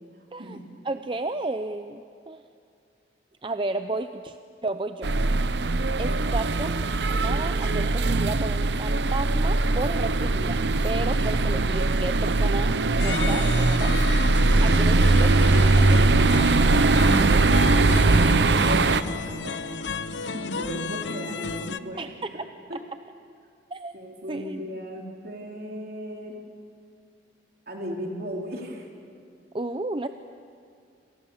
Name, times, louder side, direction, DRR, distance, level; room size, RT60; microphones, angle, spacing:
voice 1, 0.8-2.4 3.4-4.4 4.6-5.1 6.0-14.0 14.6-15.9 22.0-22.4 23.7-23.9 24.3-24.6 29.5-30.1, right 2 dB, 30° right, 8 dB, 0.6 m, -33 dB
sound 1, 5.0-19.0, right 2 dB, 75° right, 0.8 m, -21 dB
sound 2, 13.0-21.8, left 4 dB, 85° left, 0.8 m, -32 dB
voice 2, 18.2-20.0 20.3-22.8 23.9-26.4 27.7-28.9, equal, 55° right, 0 dB, 4.0 m, -37 dB
29.0 x 26.5 x 7.3 m, 2.4 s
head